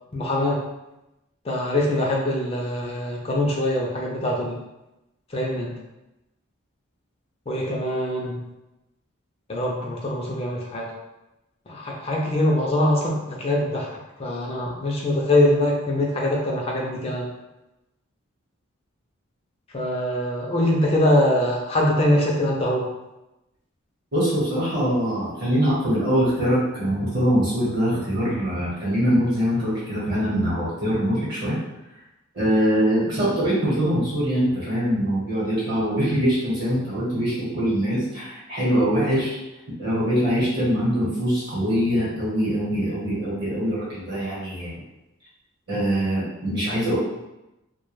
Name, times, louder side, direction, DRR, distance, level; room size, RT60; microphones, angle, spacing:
voice 1, 0.1-0.7 1.4-4.6 5.3-5.7 7.5-8.4 9.5-10.9 11.7-17.3 19.7-22.9, left 1 dB, 25° left, -2 dB, 0.3 m, -23 dB
voice 2, 24.1-31.6 32.3-39.4 39.8-44.7 45.7-47.0, equal, 50° right, -8 dB, 0.9 m, -23 dB
2.2 x 2.1 x 3.0 m, 0.96 s
head